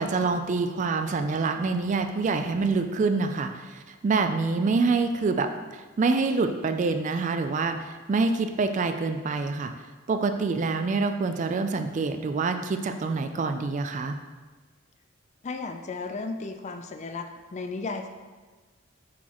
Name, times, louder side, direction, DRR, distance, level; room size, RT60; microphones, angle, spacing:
voice 1, 0.0-9.7 10.1-14.2, right 4 dB, 35° right, 8 dB, 0.3 m, -26 dB
voice 2, 15.4-18.1, left 3 dB, 35° left, 6 dB, 0.4 m, -34 dB
6.1 x 5.9 x 3.0 m, 1.4 s
head